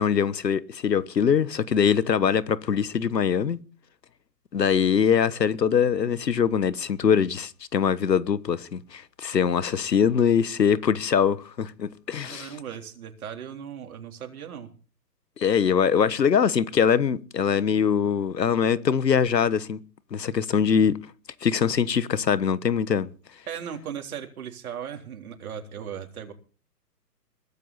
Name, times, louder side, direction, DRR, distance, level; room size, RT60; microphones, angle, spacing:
voice 1, 0.0-3.6 4.5-12.5 15.4-19.8 20.1-21.0 21.4-23.1, left 7 dB, 80° left, 1.3 m, -23 dB
voice 2, 12.1-14.7 23.5-26.3, right 8 dB, 60° right, 3.6 m, -37 dB
22.0 x 12.5 x 4.2 m
hypercardioid pair, 130°, 49 cm